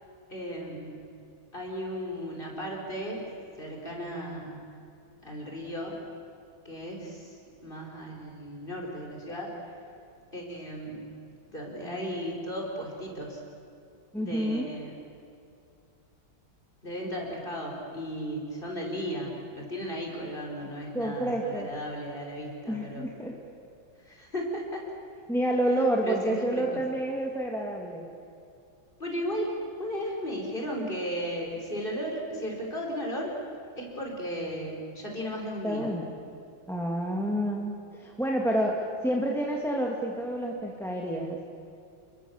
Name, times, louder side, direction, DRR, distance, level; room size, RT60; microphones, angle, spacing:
voice 1, 0.3-1.1 1.5-3.3 3.6-4.7 5.2-5.9 6.7-9.8 10.3-11.1 11.5-13.4 14.2-14.9 16.8-23.1 24.0-24.8 26.0-26.8 29.0-29.5 29.8-33.3 33.8-35.9, equal, 25° left, -1 dB, 5.3 m, -35 dB
voice 2, 14.1-14.7 20.9-21.7 22.7-23.4 25.3-28.1 35.6-36.1 36.7-41.4, right 1 dB, ahead, -1 dB, 2.1 m, -29 dB
30.0 x 22.0 x 7.3 m, 2.6 s
omnidirectional pair, 2.2 m